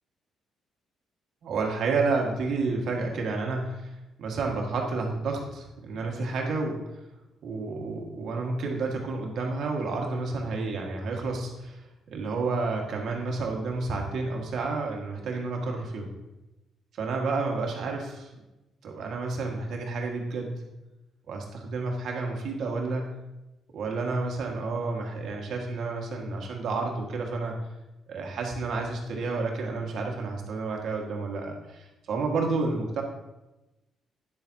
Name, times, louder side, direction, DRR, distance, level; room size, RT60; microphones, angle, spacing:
voice 1, 1.4-6.8 7.4-16.1 17.0-18.3 18.8-20.5 21.3-23.1 23.7-27.5 28.1-33.0, right 3 dB, 70° right, 1 dB, 1.7 m, -30 dB
9.6 x 7.3 x 2.8 m, 0.99 s
cardioid pair, 80°, 0 cm